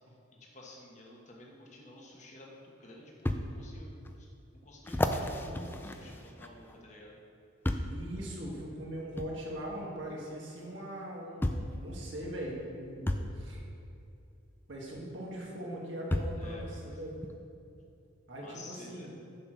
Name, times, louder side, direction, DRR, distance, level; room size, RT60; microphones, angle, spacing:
voice 1, 0.5-4.3 4.6-7.1 16.4-16.9 18.4-19.1, left 2 dB, 35° left, -2 dB, 1.3 m, -51 dB
sound 1, 2.1-2.2 3.3-3.4 4.1-4.2 4.9-6.8 7.6-8.0 9.2-9.3 10.6-10.7 11.4-11.8 13.1-13.3 14.9-15.0 16.1-16.4 17.2-17.3, left 1 dB, 10° left, 0.3 m, -32 dB
voice 2, 5.4-5.7 7.9-13.6 14.7-17.1 18.3-19.1, right 1 dB, 60° right, -3 dB, 1.7 m, -41 dB
7.4 x 6.1 x 6.1 m, 2.6 s
head